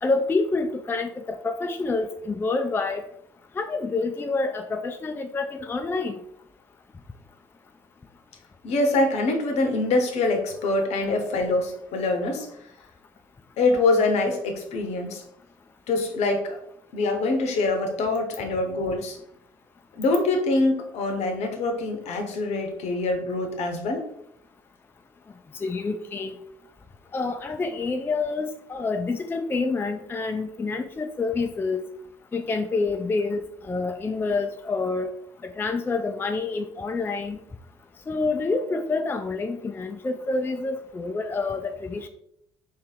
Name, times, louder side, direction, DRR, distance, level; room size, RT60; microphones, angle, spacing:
voice 1, 0.0-3.0 3.6-6.1 25.6-26.4 27.1-31.8 32.3-35.1 35.4-37.4 38.1-42.1, left 3 dB, 15° left, 6 dB, 0.3 m, -27 dB
voice 2, 8.6-12.5 13.6-15.2 15.9-16.6 16.9-19.2 20.0-24.1 38.5-38.7, left 2 dB, 60° left, 5 dB, 0.8 m, -24 dB
3.2 x 2.7 x 3.9 m, 0.74 s
hypercardioid pair, 55°, 13 cm